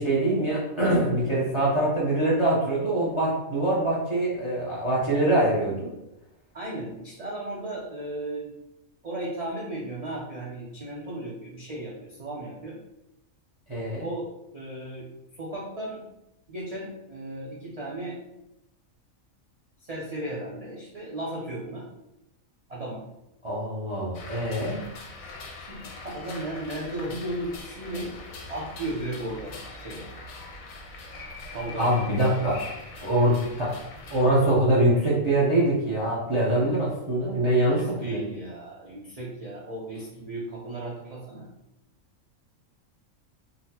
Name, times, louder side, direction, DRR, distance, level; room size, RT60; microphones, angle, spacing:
voice 1, 0.0-5.9 13.7-14.0 23.4-24.8 31.7-32.6 33.0-33.7 34.1-38.2, right 1 dB, 30° right, -6 dB, 0.6 m, -24 dB
voice 2, 6.5-8.5 9.0-12.8 14.0-15.1 15.4-16.0 16.5-18.2 19.8-21.9 22.7-23.0 25.1-28.1 28.5-29.6 29.8-30.1 31.5-32.0 37.6-41.5, right 1 dB, 75° right, -5 dB, 0.3 m, -35 dB
sound 1, 24.1-34.3, left 3 dB, 85° left, 1.1 m, -42 dB
3.9 x 2.0 x 2.8 m, 0.87 s
omnidirectional pair, 1.4 m